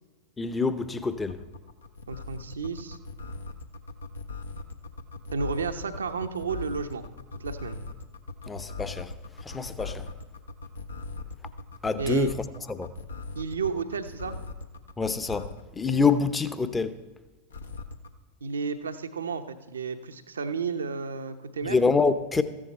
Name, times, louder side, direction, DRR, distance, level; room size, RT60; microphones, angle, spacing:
voice 1, 0.4-1.4 8.5-9.1 9.4-10.1 11.8-12.9 15.0-17.0 21.6-22.4, left 4 dB, 15° left, 0.8 m, -26 dB
sound 1, 1.3-15.7 17.5-18.1, left 3 dB, 70° left, 0.9 m, -39 dB
voice 2, 2.1-3.0 5.3-7.0 7.3-7.8 12.0-12.3 13.3-14.4 18.4-21.8, right 5 dB, 70° right, 0.8 m, -32 dB
14.5 x 9.9 x 4.4 m
figure-of-eight pair, 90°, 0 cm